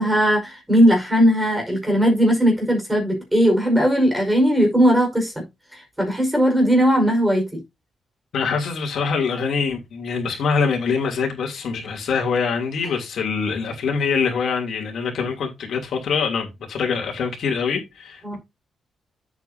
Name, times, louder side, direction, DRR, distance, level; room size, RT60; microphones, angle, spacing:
voice 1, 0.0-5.4 5.7-7.4 18.2-18.4, equal, 10° right, 5.0 m, -18 dB
voice 2, 8.3-18.4, left 5 dB, 65° left, 3.1 m, -24 dB
9.7 x 8.2 x 2.8 m
cardioid pair, 125°, 0 cm